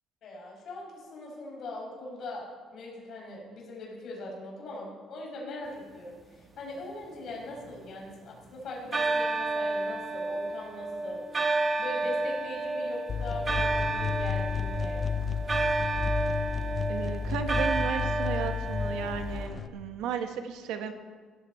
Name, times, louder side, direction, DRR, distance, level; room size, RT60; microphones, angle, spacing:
voice 1, 0.2-11.2 11.8-15.1, left 2 dB, 55° left, -3 dB, 5.7 m, -41 dB
sound 1, 6.9-8.4 8.9-19.5, right 2 dB, 25° right, 1.6 m, -31 dB
sound 2, 13.1-19.7, left 6 dB, 35° left, 0.6 m, -32 dB
voice 2, 16.9-20.9, right 8 dB, 85° right, 7 dB, 1.3 m, -34 dB
17.0 x 14.5 x 4.4 m, 1.5 s
cardioid pair, 145°, 0 cm